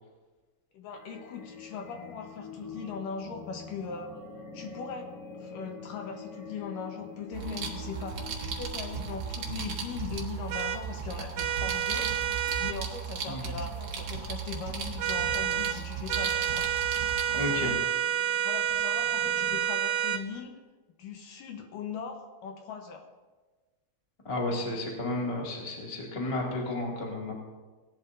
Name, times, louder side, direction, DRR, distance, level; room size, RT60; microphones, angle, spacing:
voice 1, 0.7-4.1 4.5-12.1 12.6-16.7 17.3-17.9 18.4-20.5 21.0-23.0, left 5 dB, 75° left, 3 dB, 2.4 m, -40 dB
sound 1, 0.9-11.5 12.1-12.2 12.5-12.7 13.1-19.6, left 5 dB, 55° left, 5.2 m, -47 dB
sound 2, 7.3-17.7, right 6 dB, 75° right, 1.1 m, -36 dB
sound 3, 10.5-10.8 11.4-12.8 15.0-15.8 16.1-20.2, right 10 dB, 90° right, 2.5 m, -29 dB
voice 2, 17.3-17.7 24.2-27.3, left 2 dB, 15° left, -2 dB, 1.1 m, -32 dB
18.0 x 11.0 x 2.6 m, 1.3 s
omnidirectional pair, 4.2 m